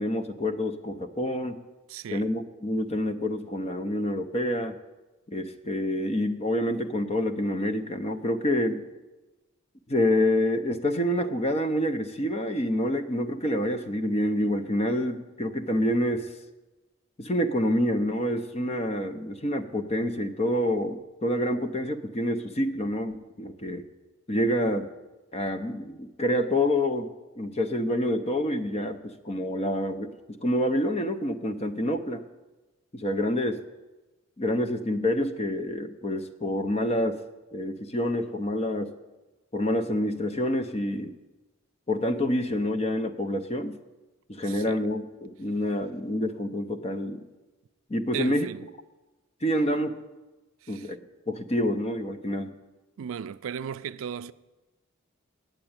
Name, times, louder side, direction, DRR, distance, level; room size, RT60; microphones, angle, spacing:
voice 1, 0.0-1.6 2.1-4.7 5.3-8.8 9.9-16.3 17.2-23.8 24.3-24.9 25.3-27.1 27.4-30.1 30.4-32.2 32.9-33.6 34.4-37.2 37.5-38.9 39.5-41.1 41.9-43.8 44.3-47.3 47.9-48.5 49.4-50.0 50.7-51.0 51.3-52.5, left 1 dB, 30° left, 0.6 m, -27 dB
voice 2, 1.9-2.3 44.4-44.9 48.1-48.7 50.6-50.9 53.0-54.3, right 8 dB, 70° right, 0.3 m, -36 dB
9.0 x 7.8 x 8.8 m
head